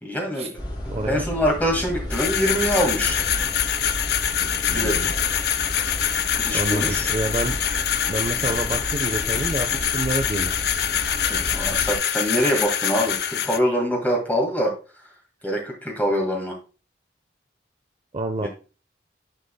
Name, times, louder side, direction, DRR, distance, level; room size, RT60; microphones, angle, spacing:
voice 1, 0.0-3.2 4.7-5.0 6.4-7.1 11.3-14.7 15.4-16.6 18.4-18.5, equal, 10° left, 0 dB, 2.0 m, -24 dB
sound 1, 0.5-12.0, left 1 dB, 25° left, 2.9 m, -33 dB
voice 2, 0.9-1.3 4.7-5.1 6.5-7.6 8.1-10.5 18.1-18.5, right 2 dB, 35° right, 7 dB, 0.5 m, -28 dB
sound 2, 2.1-13.6, left 9 dB, 65° left, 0.5 m, -25 dB
9.9 x 5.4 x 2.3 m, 0.33 s
head